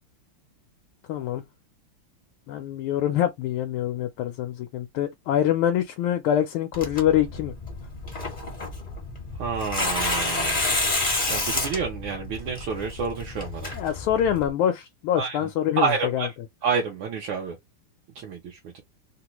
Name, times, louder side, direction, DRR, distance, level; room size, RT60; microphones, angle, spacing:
voice 1, 1.1-1.4 2.5-7.5 13.7-16.3, left 10 dB, 80° left, 1.4 m, -25 dB
Tearing, 6.7-14.5, left 2 dB, 35° left, 0.6 m, -29 dB
voice 2, 9.4-10.7 11.3-13.7 15.2-15.4 15.8-16.3 16.6-17.6 18.2-18.8, right 5 dB, 70° right, 1.5 m, -29 dB
3.7 x 2.1 x 2.9 m
omnidirectional pair, 2.4 m